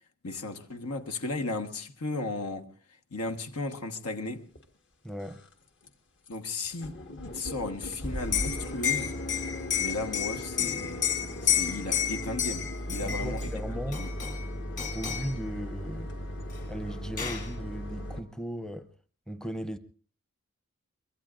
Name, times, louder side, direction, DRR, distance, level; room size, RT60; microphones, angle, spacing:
voice 1, 0.2-2.7 3.1-4.4 6.3-7.0 7.2-9.1 9.8-11.1 11.4-13.5 14.0-14.1, left 2 dB, 90° left, 1.3 m, -35 dB
sound 1, 4.5-4.6 5.1-5.5 5.8-5.9 6.3-6.4 6.6-18.2, equal, 55° left, 1.5 m, -37 dB
voice 2, 5.0-5.4 13.0-14.1 14.9-16.1 16.7-18.9 19.3-19.8, equal, 5° left, 0.6 m, -37 dB
Liquid, 8.2-13.5 13.9-14.5 14.8-15.4 16.5-16.6 16.9-17.5, left 10 dB, 35° left, 2.1 m, -31 dB
23.5 x 21.5 x 2.5 m
head